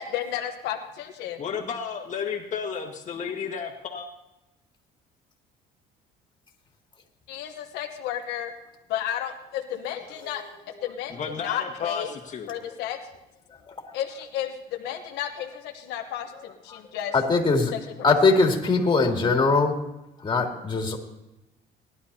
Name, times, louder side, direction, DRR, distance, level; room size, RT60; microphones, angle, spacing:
voice 1, 0.0-1.4 7.3-8.5 8.9-10.4 10.8-12.1 12.5-13.0 13.9-17.2 17.7-18.4, left 10 dB, 90° left, 3 dB, 1.1 m, -33 dB
voice 2, 1.4-4.1 11.1-12.5, left 6 dB, 45° left, 2 dB, 1.7 m, -32 dB
voice 3, 17.1-17.7 18.0-19.7 20.2-21.0, left 3 dB, 25° left, 1 dB, 2.6 m, -21 dB
19.5 x 11.5 x 2.8 m, 0.92 s
cardioid pair, 110°, 17 cm